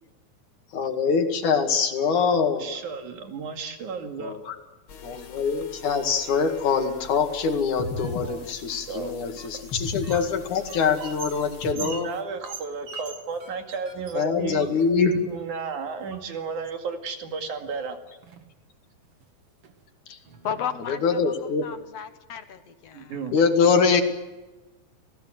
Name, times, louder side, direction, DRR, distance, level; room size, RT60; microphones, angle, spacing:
voice 1, 0.7-2.7 4.2-4.5 5.0-12.1 14.1-15.2 20.9-21.7 23.3-24.0, left 5 dB, 80° left, 5 dB, 3.6 m, -24 dB
voice 2, 2.5-4.4 8.1-8.5 8.9-9.3 11.7-14.8 15.2-18.0 22.9-23.3, right 5 dB, 75° right, 4 dB, 3.7 m, -34 dB
sound 1, 4.9-11.7, left 4 dB, 45° left, 2.5 m, -39 dB
sound 2, 8.0-8.1 8.7-8.8 9.4-9.5 10.0-10.1 10.7-10.8 11.3-11.4 11.9-12.0 12.4-12.5 12.9-13.0 13.4-13.5 13.9-14.0, right 1 dB, 35° right, 4.9 m, -48 dB
sound 3, 9.2-10.3 10.6-13.4 13.7-13.8 14.1-15.2 15.9-16.5 17.6-17.7 18.0-18.5 19.0-19.2 19.6-19.7 20.2-21.1, right 6 dB, 50° right, 2.7 m, -42 dB
voice 3, 20.4-23.2, left 8 dB, 65° left, 10 dB, 2.0 m, -34 dB
30.0 x 17.5 x 7.8 m, 1.2 s
omnidirectional pair, 3.5 m